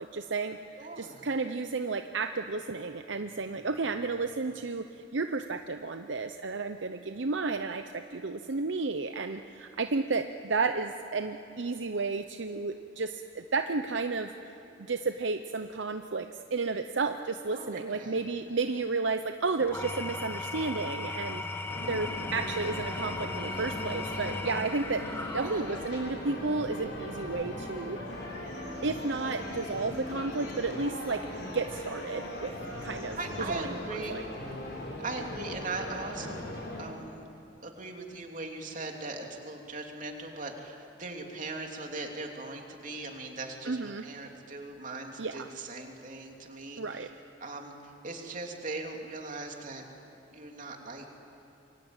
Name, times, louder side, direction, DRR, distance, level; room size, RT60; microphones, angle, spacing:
voice 1, 0.0-0.6 1.0-14.3 14.8-21.5 21.9-25.0 25.3-28.0 28.8-32.5 32.8-33.2 33.5-33.6 33.9-34.2 43.7-44.0 45.2-45.5 46.8-47.1, right 3 dB, 75° right, 7 dB, 0.8 m, -32 dB
voice 2, 0.8-1.3 17.5-18.2 21.8-22.0 25.4-25.8 33.2-34.2 35.0-37.2 37.6-47.1 47.4-49.8 50.3-51.1, right 3 dB, 45° right, 2 dB, 3.1 m, -40 dB
Engine / Tools, 19.6-26.0, left 3 dB, 15° left, 1.2 m, -37 dB
sound 1, 21.7-36.9, left 1 dB, 65° left, 6.4 m, -39 dB
27.5 x 23.5 x 9.0 m, 2.7 s
head